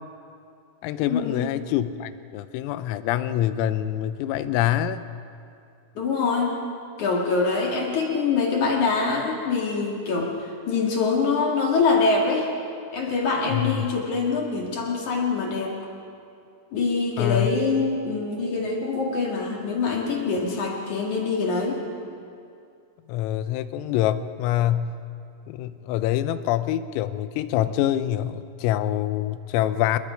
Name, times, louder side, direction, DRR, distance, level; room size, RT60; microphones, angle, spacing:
voice 1, 0.8-5.0 13.5-13.9 17.2-17.5 23.1-24.9 25.5-30.0, left 12 dB, 85° left, 12 dB, 3.4 m, -25 dB
voice 2, 6.0-6.5 7.0-12.5 12.9-15.7 16.7-21.8, left 4 dB, 50° left, -1 dB, 2.5 m, -24 dB
28.0 x 21.5 x 5.1 m, 2.5 s
omnidirectional pair, 6.0 m